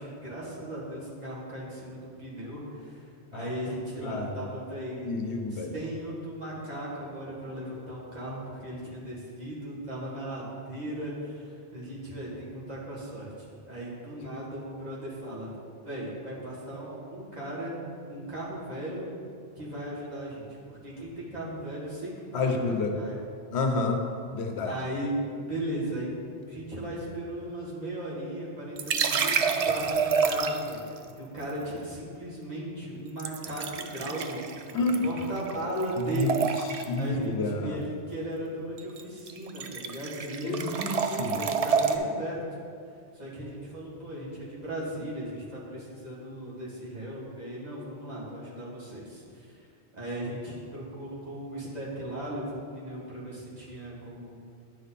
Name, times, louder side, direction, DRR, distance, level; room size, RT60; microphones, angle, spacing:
voice 1, 0.0-5.2 5.5-13.3 13.6-15.5 15.8-17.7 18.1-19.1 19.5-23.1 24.6-25.1 25.5-26.1 26.5-36.5 37.0-37.3 37.6-42.4 43.1-49.6 49.9-54.4, right 1 dB, 40° right, -7 dB, 2.1 m, -37 dB
voice 2, 3.3-4.5 5.0-5.7 22.3-22.9 23.5-24.7 34.7-35.0 36.0-36.3 36.7-37.8 40.4-41.4, left 3 dB, 75° left, 4 dB, 1.0 m, -30 dB
sound 1, 28.8-30.8 33.2-35.6 35.8-37.0 38.8-39.0 39.3-42.0, right 5 dB, 55° right, 0.4 m, -28 dB
10.0 x 5.4 x 4.1 m, 2.4 s
omnidirectional pair, 1.1 m